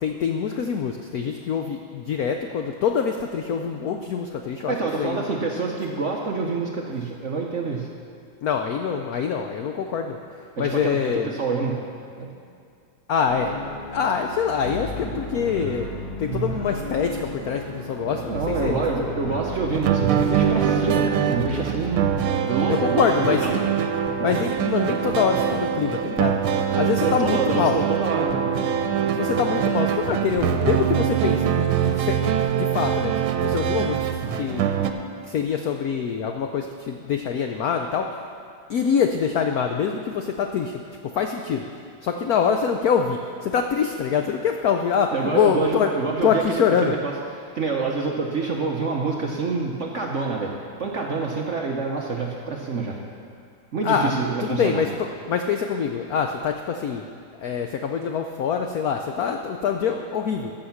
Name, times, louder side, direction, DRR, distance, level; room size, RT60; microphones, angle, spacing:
voice 1, 0.0-5.2 8.4-10.2 10.6-11.3 13.1-13.6 13.9-15.9 16.2-19.1 22.7-23.5 24.2-26.4 26.8-27.8 29.1-34.0 34.3-34.7 35.3-38.2 38.7-41.7 42.0-45.9 46.2-47.0 53.8-57.0 57.4-60.5, left 6 dB, 90° left, 5 dB, 0.8 m, -25 dB
voice 2, 4.7-7.9 10.6-11.8 12.2-12.3 18.1-23.6 27.0-28.6 45.1-47.1 47.5-50.5 50.8-53.0 53.7-54.8, right 4 dB, 55° right, -1 dB, 0.8 m, -27 dB
sound 1, 13.3-22.1, equal, 55° left, 3.9 m, -33 dB
sound 2, 19.7-34.9, right 8 dB, 90° right, 1.6 m, -23 dB
14.5 x 6.4 x 5.8 m, 2.3 s
omnidirectional pair, 2.3 m